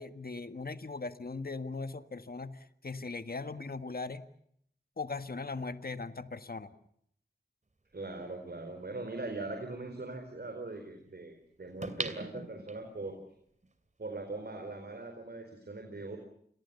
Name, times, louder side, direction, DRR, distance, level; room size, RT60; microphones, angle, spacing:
voice 1, 0.0-4.3 5.0-6.7, left 3 dB, 60° left, 10 dB, 1.6 m, -39 dB
voice 2, 7.9-13.2 14.0-16.2, right 2 dB, 65° right, 5 dB, 4.4 m, -41 dB
sound 1, 11.8-13.1 13.6-13.7, right 2 dB, 45° right, 2.8 m, -39 dB
29.0 x 22.0 x 6.9 m, 0.70 s
wide cardioid pair, 45°, 18 cm